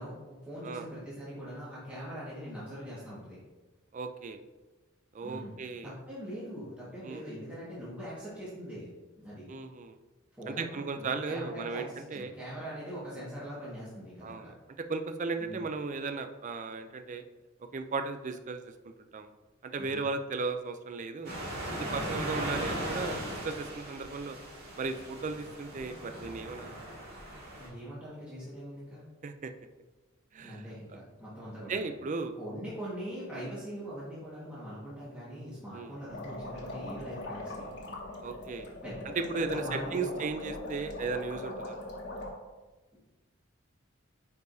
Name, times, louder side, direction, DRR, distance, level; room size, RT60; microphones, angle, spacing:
voice 1, 0.0-3.4 5.2-5.5 5.8-8.9 9.2-9.5 10.3-14.5 15.4-15.7 19.8-20.1 22.0-22.3 27.6-29.0 30.4-31.9 32.3-37.7 38.6-40.1, equal, 5° right, -11 dB, 1.6 m, -42 dB
voice 2, 3.9-4.4 5.1-5.9 7.0-7.2 9.5-10.0 10.5-12.3 14.2-17.2 17.6-19.3 19.6-21.3 21.7-24.4 24.8-26.8 29.2-29.5 30.3-30.6 31.7-32.3 33.3-33.5 35.7-35.9 38.2-38.7 39.2-41.8, right 4 dB, 35° right, 8 dB, 0.4 m, -36 dB
sound 1, 21.2-27.7, right 1 dB, 50° right, 2.1 m, -38 dB
sound 2, 36.1-42.3, left 1 dB, 55° left, 1.4 m, -41 dB
9.6 x 4.7 x 2.7 m, 1.2 s
head